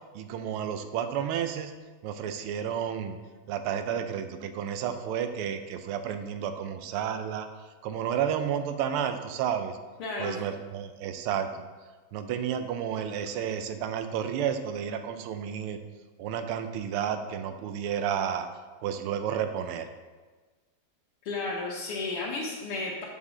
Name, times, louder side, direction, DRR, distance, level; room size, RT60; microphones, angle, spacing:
voice 1, 0.1-1.7 2.0-3.2 3.5-7.5 7.8-9.8 10.2-11.6 12.1-15.8 16.2-18.5 18.8-19.9, right 8 dB, 85° right, 8 dB, 1.5 m, -31 dB
voice 2, 10.0-10.4 21.2-23.1, left 3 dB, 85° left, -6 dB, 2.0 m, -33 dB
7.2 x 6.3 x 3.8 m, 1.3 s
omnidirectional pair, 2.4 m